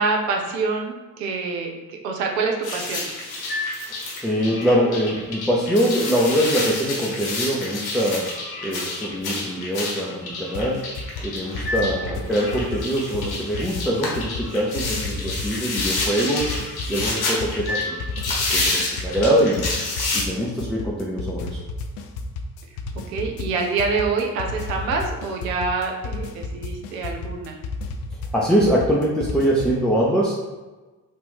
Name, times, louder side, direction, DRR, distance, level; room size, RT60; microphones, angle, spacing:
voice 1, 0.0-3.1 12.1-12.2 23.1-27.6, right 4 dB, 80° right, 2 dB, 0.6 m, -26 dB
sound 1, 2.6-20.2, left 2 dB, 50° left, 1.0 m, -29 dB
voice 2, 4.2-8.3 8.6-10.9 11.2-16.5 16.9-18.0 18.5-19.7 20.1-21.6 28.3-30.5, equal, ahead, -5 dB, 0.5 m, -23 dB
sound 2, 10.5-29.8, left 3 dB, 65° left, 0.5 m, -32 dB
3.1 x 2.5 x 3.3 m, 1.2 s
figure-of-eight pair, 40°, 49 cm